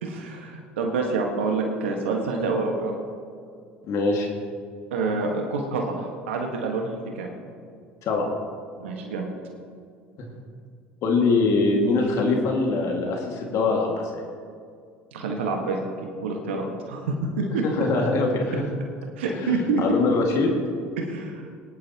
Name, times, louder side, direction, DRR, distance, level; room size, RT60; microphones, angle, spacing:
voice 1, 0.0-2.9 4.9-7.3 8.8-9.3 15.1-15.8 16.2-17.6 19.2-19.8 21.0-21.4, right 3 dB, 80° right, 1 dB, 1.5 m, -27 dB
voice 2, 3.9-4.3 8.0-8.3 11.0-14.3 17.6-18.7 19.3-19.5 19.8-20.5, left 3 dB, 55° left, 1 dB, 2.0 m, -23 dB
19.5 x 11.0 x 2.9 m, 2.3 s
hypercardioid pair, 70°, 6 cm